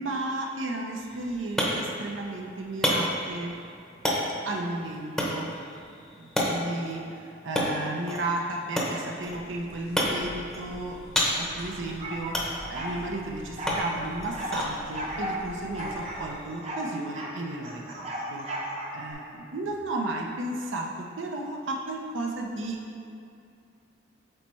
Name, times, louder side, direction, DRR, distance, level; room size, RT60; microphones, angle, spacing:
voice 1, 0.0-3.5 4.4-5.5 6.2-12.4 12.7-18.5 18.9-22.8, right 2 dB, 70° right, 0 dB, 0.6 m, -34 dB
sound 1, 1.0-16.6, equal, ahead, 0.8 m, -32 dB
sound 2, 9.2-16.5, left 1 dB, 55° left, 0.5 m, -46 dB
sound 3, 12.0-13.0 13.6-14.6 14.9-15.4 15.7-17.4 17.6-19.1, right 1 dB, 35° right, 0.8 m, -35 dB
7.8 x 4.1 x 3.1 m, 2.5 s
head